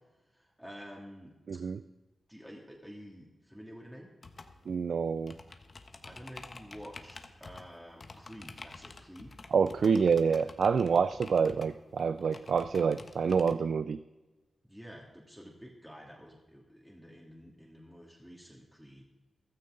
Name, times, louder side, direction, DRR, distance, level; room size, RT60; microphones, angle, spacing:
voice 1, 0.3-1.3 2.3-4.1 6.0-9.3 9.8-9.9 14.7-19.0, equal, 5° right, -2 dB, 2.8 m, -49 dB
voice 2, 1.5-1.8 4.7-5.4 9.5-14.0, right 6 dB, 75° right, 13 dB, 0.3 m, -27 dB
sound 1, 4.2-13.6, left 3 dB, 50° left, 1.2 m, -50 dB
15.0 x 13.0 x 3.9 m, 1.2 s
cardioid pair, 50°, 0 cm